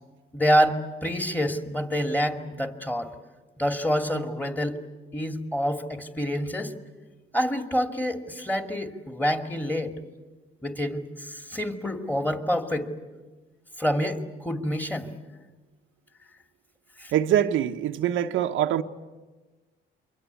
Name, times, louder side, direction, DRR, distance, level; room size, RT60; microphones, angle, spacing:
voice 1, 0.3-3.1 3.6-4.8 5.1-6.7 7.3-9.9 10.6-12.9 13.8-15.1 17.0-17.1, equal, 10° left, 2.5 m, -27 dB
voice 2, 17.1-18.8, right 10 dB, 85° right, 1.0 m, -24 dB
28.0 x 23.5 x 8.3 m
cardioid pair, 90°, 20 cm